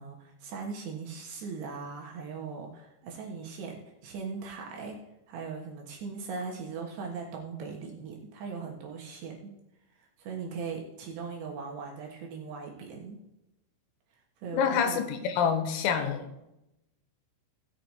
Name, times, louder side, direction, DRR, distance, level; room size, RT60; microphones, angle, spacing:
voice 1, 0.0-5.0 5.3-9.5 10.2-13.2 14.4-15.0, right 5 dB, 65° right, 0 dB, 3.1 m, -39 dB
voice 2, 14.5-16.3, left 7 dB, 85° left, 7 dB, 3.9 m, -27 dB
17.5 x 6.5 x 4.2 m, 0.89 s
omnidirectional pair, 6.0 m